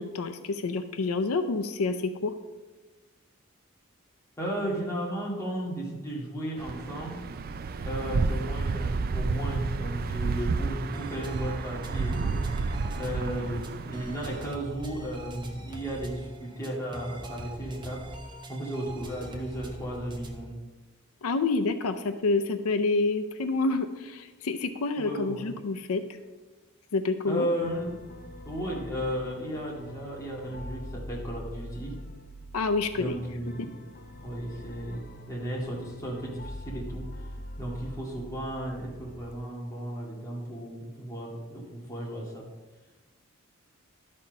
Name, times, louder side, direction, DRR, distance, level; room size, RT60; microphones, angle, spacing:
voice 1, 0.0-2.3 21.2-26.0 26.9-27.5 32.5-33.2, left 3 dB, 85° left, 8 dB, 0.5 m, -28 dB
voice 2, 4.4-7.2 7.8-12.7 13.0-18.1 18.5-20.6 25.0-25.6 27.2-28.0 28.5-32.0 32.9-33.8 34.2-37.2 37.6-42.4, right 1 dB, 15° left, -5 dB, 2.1 m, -34 dB
sound 1, 6.6-14.5, right 4 dB, 45° right, 0.4 m, -31 dB
sound 2, 10.9-20.5, right 1 dB, 20° right, 0.8 m, -42 dB
sound 3, 27.6-39.3, left 1 dB, 45° left, 0.6 m, -43 dB
12.0 x 4.3 x 5.3 m, 1.2 s
head